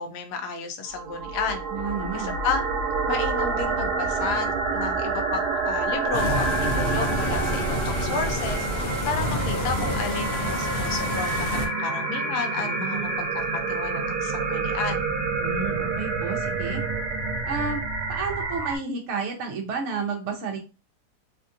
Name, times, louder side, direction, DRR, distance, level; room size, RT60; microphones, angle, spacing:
voice 1, 0.0-1.6 2.1-2.6 3.1-8.7 9.1-15.0, left 5 dB, 80° left, 7 dB, 1.2 m, -32 dB
sound 1, 0.9-18.8, right 4 dB, 85° right, 1.3 m, -28 dB
voice 2, 1.7-2.3 12.6-13.2 15.4-16.8 17.4-17.8 18.1-20.6, right 4 dB, 55° right, 1 dB, 1.0 m, -31 dB
sound 2, 6.1-11.7, left 1 dB, 60° left, 0.8 m, -29 dB
3.4 x 2.5 x 2.6 m, 0.31 s
omnidirectional pair, 1.7 m